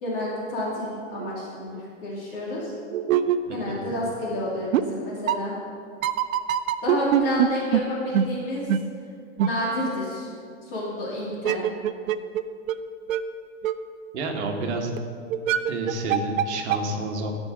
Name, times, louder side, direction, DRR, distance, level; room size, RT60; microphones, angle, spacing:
voice 1, 0.0-2.7 3.5-5.6 6.8-8.7 9.4-10.3 10.6-11.6, left 1 dB, 45° left, -6 dB, 2.5 m, -29 dB
sound 1, 0.8-0.9 1.2-1.3 1.7-1.8 2.6-4.1 4.3-4.4 4.7-4.8 5.3-5.4 6.0-7.5 7.7-7.8 8.1-8.2 8.7-8.8 9.4-9.5 11.3-12.4 12.7-12.8 13.1-13.2 13.6-13.7 14.3-14.4 15.0-15.1 15.3-16.4 16.7-16.8, right 11 dB, 80° right, 0.7 m, -23 dB
voice 2, 3.5-3.9 14.1-15.0 15.7-17.3, right 2 dB, 55° right, 2 dB, 1.4 m, -30 dB
12.5 x 5.4 x 6.3 m, 2.3 s
supercardioid pair, 170°, 40 cm